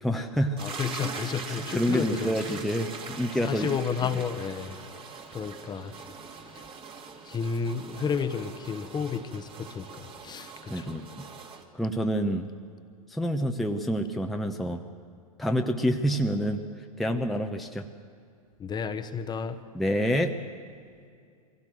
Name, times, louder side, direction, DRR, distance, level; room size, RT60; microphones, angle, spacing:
voice 1, 0.0-0.6 1.7-3.7 4.1-4.2 10.7-11.3 11.8-12.5 13.1-14.8 15.4-16.6 17.0-17.9 19.7-20.4, equal, ahead, 3 dB, 1.0 m, -27 dB
voice 2, 0.6-2.6 3.4-6.7 7.2-11.0 18.6-19.6, left 6 dB, 20° left, 8 dB, 1.1 m, -32 dB
sound 1, 0.6-11.6, right 5 dB, 30° right, 2.1 m, -42 dB
23.0 x 17.0 x 7.6 m, 2.4 s
hypercardioid pair, 95°, 19 cm